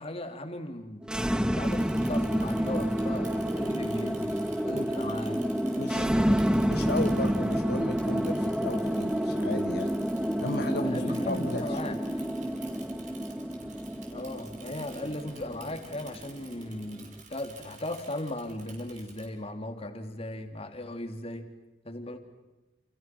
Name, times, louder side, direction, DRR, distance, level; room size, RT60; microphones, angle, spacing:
voice 1, 0.0-4.4 4.6-5.4 5.9-6.4 10.7-12.0 14.1-21.5 21.8-22.2, left 1 dB, 35° left, 6 dB, 3.0 m, -37 dB
sound 1, 1.0-17.1, equal, 5° right, 0.8 m, -29 dB
Bicycle / Mechanisms, 1.6-19.3, right 5 dB, 45° right, 5.7 m, -52 dB
voice 2, 5.8-6.4 6.7-9.9 10.4-11.8, left 2 dB, 65° left, 5 dB, 1.5 m, -35 dB
30.0 x 28.5 x 6.1 m, 1.1 s
head